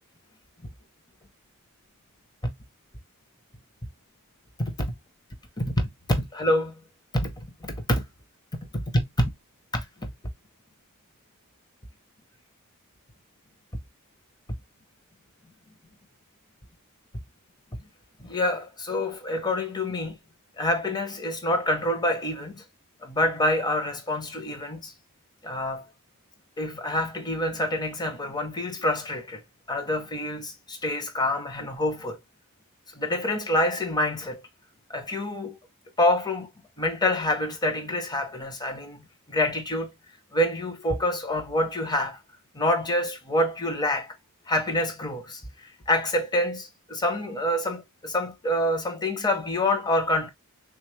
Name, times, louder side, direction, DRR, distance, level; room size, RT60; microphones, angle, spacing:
voice 1, 4.6-4.9 5.6-6.8 7.1-8.0 8.7-8.8 9.2-9.3 9.7-10.1 17.7-17.8 18.2-20.2 20.6-22.6 23.0-24.9 25.4-25.8 26.6-29.4 29.7-32.2 32.9-34.4 34.9-35.6 36.0-36.5 36.8-39.9 40.3-42.2 42.5-44.1 44.5-50.3, left 1 dB, 20° left, 0.8 m, -27 dB
3.6 x 2.4 x 3.0 m
head